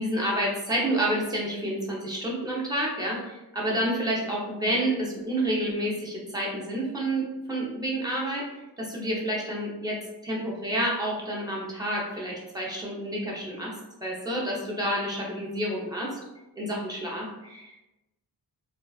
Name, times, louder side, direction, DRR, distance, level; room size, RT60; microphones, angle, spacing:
voice 1, 0.0-8.5 8.8-10.0 10.2-13.7 14.0-16.2 16.6-17.8, right 1 dB, 10° right, -4 dB, 0.7 m, -29 dB
2.3 x 2.3 x 2.3 m, 0.98 s
wide cardioid pair, 70°, 43 cm